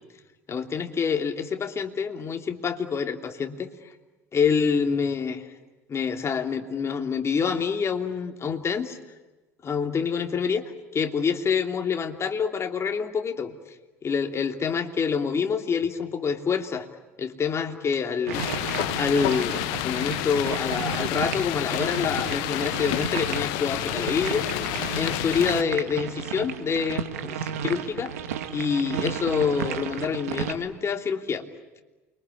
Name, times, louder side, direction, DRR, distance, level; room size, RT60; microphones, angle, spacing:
voice 1, 0.5-3.7 4.3-5.5 5.9-9.0 9.6-10.6 10.9-13.5 14.0-16.9 17.2-18.5 18.9-24.5 24.9-28.1 28.5-31.4, left 6 dB, 35° left, 5 dB, 3.1 m, -27 dB
sound 1, 18.3-25.6, left 17 dB, 65° left, 1.0 m, -29 dB
sound 2, 18.3-30.5, right 9 dB, 80° right, 2.2 m, -33 dB
29.0 x 24.0 x 8.6 m, 1.1 s
hypercardioid pair, 70°, 8 cm